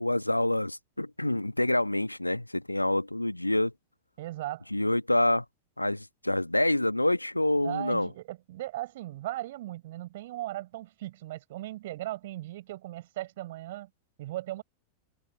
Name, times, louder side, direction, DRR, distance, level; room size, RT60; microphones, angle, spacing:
voice 1, 0.0-3.7 4.7-5.4 5.8-8.1, left 1 dB, 85° left, 1.5 m, -27 dB
voice 2, 4.2-4.6 7.6-13.9 14.2-14.6, right 16 dB, 55° right, 7.8 m, -37 dB
figure-of-eight pair, 90°, 0 cm